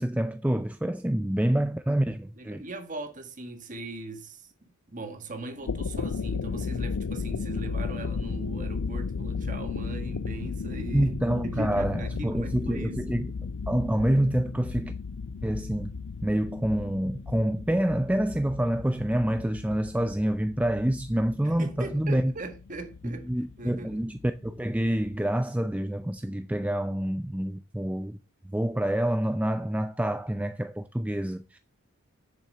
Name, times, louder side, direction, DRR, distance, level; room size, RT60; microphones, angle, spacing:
voice 1, 0.0-2.6 10.9-13.3 13.7-14.9 15.4-15.9 16.2-22.3 23.0-28.2 28.5-31.6, right 1 dB, 5° right, 0.4 m, -27 dB
voice 2, 1.1-1.6 2.4-11.1 11.4-13.2 21.4-23.3 23.6-24.1, right 2 dB, 35° right, 1.5 m, -40 dB
sound 1, 5.5-25.2, left 5 dB, 90° left, 0.5 m, -35 dB
7.9 x 7.1 x 7.7 m
head